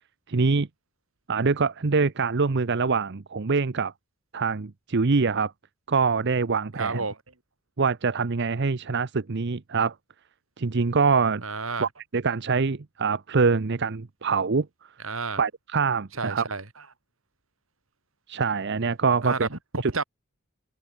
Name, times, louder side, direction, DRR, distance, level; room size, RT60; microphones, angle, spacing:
voice 1, 0.3-0.7 1.3-3.9 4.3-5.5 5.9-7.0 7.8-9.9 10.6-11.4 11.8-14.7 15.4-16.4 18.3-19.5 19.8-19.9, right 4 dB, 55° right, 0.7 m, -24 dB
voice 2, 6.8-7.2 11.4-11.9 15.0-15.4 16.1-16.6 19.2-20.0, right 4 dB, 75° right, 3.3 m, -30 dB
open air
head